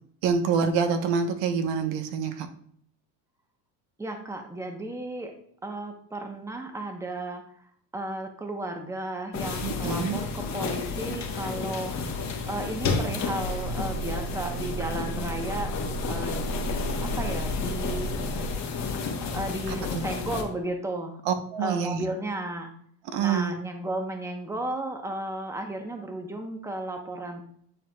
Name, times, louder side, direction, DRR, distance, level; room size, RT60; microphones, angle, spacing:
voice 1, 0.2-2.5 9.6-10.2 19.7-20.0 21.3-22.0 23.1-23.5, right 6 dB, 60° right, 7 dB, 1.1 m, -26 dB
voice 2, 4.0-5.3 5.6-7.7 7.9-15.7 16.1-16.4 17.0-18.5 19.2-21.2 21.6-22.7 23.2-27.4, right 1 dB, 5° right, 4 dB, 0.9 m, -34 dB
sound 1, 9.3-20.4, left 5 dB, 35° left, 1.2 m, -31 dB
sound 2, 13.4-18.5, right 4 dB, 55° left, 1.4 m, -35 dB
9.2 x 4.6 x 2.3 m, 0.63 s
supercardioid pair, 120°, 48 cm